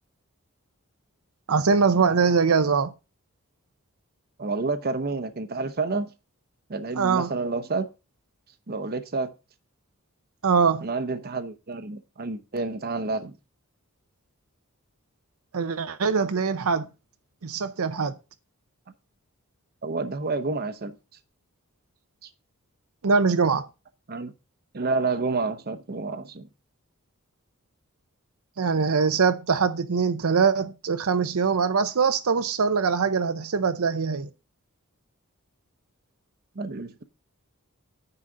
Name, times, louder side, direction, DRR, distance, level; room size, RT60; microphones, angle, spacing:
voice 1, 1.5-2.9 7.0-7.3 10.4-10.9 15.5-16.9 17.4-18.1 23.0-23.7 28.6-34.3, right 5 dB, 80° right, 0.7 m, -22 dB
voice 2, 4.4-6.1 6.7-7.9 8.7-9.3 10.8-13.4 19.8-20.9 22.2-22.3 24.1-24.3 24.7-26.5 36.6-37.0, right 3 dB, 45° right, 0.8 m, -29 dB
9.7 x 4.0 x 6.2 m
head